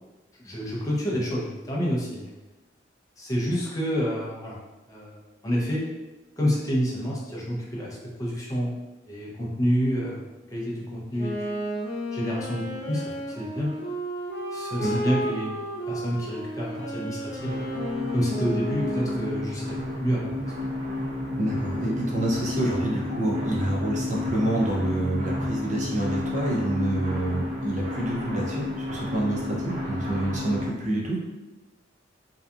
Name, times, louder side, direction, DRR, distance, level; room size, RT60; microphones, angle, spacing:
voice 1, 0.4-2.3 3.2-4.6 4.9-5.2 5.4-5.9 6.4-8.7 9.1-10.2 10.5-11.3 12.1-13.1 13.4-13.7 14.5-15.6 15.9-17.7 18.1-20.3 20.6-20.7, equal, 20° left, -5 dB, 0.5 m, -28 dB
Wind instrument woodwind instrument, 11.1-19.5, equal, 70° left, 0.7 m, -33 dB
sound 1, 17.4-30.7, left 2 dB, 75° right, 1.0 m, -31 dB
voice 2, 21.4-31.2, right 1 dB, 40° right, -3 dB, 0.5 m, -27 dB
2.7 x 2.3 x 2.4 m, 1.1 s
head